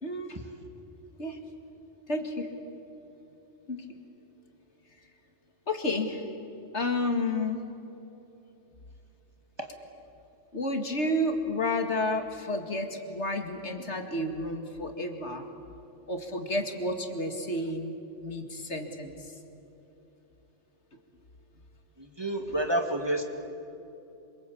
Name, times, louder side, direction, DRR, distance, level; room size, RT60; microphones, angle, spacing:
voice 1, 0.0-0.4 1.2-1.4 2.1-2.5 3.7-3.9 5.7-6.2 6.7-7.6 10.5-15.5 16.1-17.9 18.2-19.3, left 1 dB, 65° left, 5 dB, 2.5 m, -31 dB
voice 2, 22.0-23.2, right 1 dB, 20° right, 4 dB, 2.2 m, -29 dB
27.0 x 25.0 x 8.5 m, 2.9 s
omnidirectional pair, 1.3 m